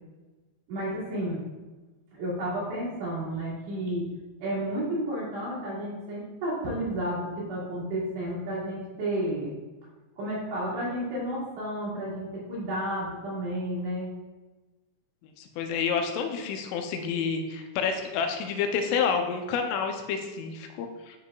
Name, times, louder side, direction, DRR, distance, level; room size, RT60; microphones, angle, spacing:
voice 1, 0.7-1.4 2.1-4.1 4.4-9.6 10.2-14.1, right 1 dB, 65° right, -8 dB, 4.2 m, -32 dB
voice 2, 15.4-21.2, left 6 dB, 85° left, 5 dB, 3.1 m, -29 dB
10.5 x 4.6 x 2.3 m, 1.2 s
omnidirectional pair, 5.6 m